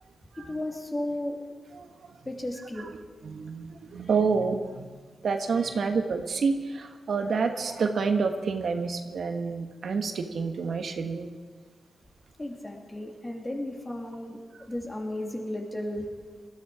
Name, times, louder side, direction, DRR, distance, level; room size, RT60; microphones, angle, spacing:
voice 1, 0.4-1.4 2.2-2.9 5.6-5.7 12.4-16.1, left 1 dB, 20° left, 1 dB, 2.7 m, -34 dB
voice 2, 1.7-2.1 2.8-2.9 3.2-4.9 5.2-11.3, right 5 dB, 70° right, 5 dB, 1.3 m, -28 dB
20.5 x 13.5 x 4.9 m, 1.5 s
cardioid pair, 90°, 0 cm